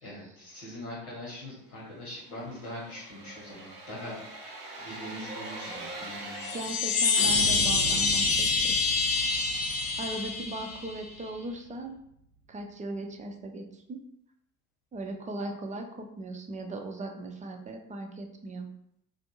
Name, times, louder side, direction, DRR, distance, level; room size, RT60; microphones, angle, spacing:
voice 1, 0.0-4.2 4.8-6.9, left 1 dB, 80° left, -6 dB, 1.3 m, -42 dB
sound 1, 2.1-6.8 7.1-12.0 12.3-12.4, right 3 dB, 90° right, 0.7 m, -41 dB
Chime, 6.3-11.0, left 4 dB, 50° left, 0.6 m, -26 dB
voice 2, 6.5-8.7 9.3-9.4 10.0-12.0 12.5-14.0 14.9-18.7, right 1 dB, 20° right, 4 dB, 0.4 m, -38 dB
2.5 x 2.5 x 2.8 m, 0.73 s
figure-of-eight pair, 50°, 44 cm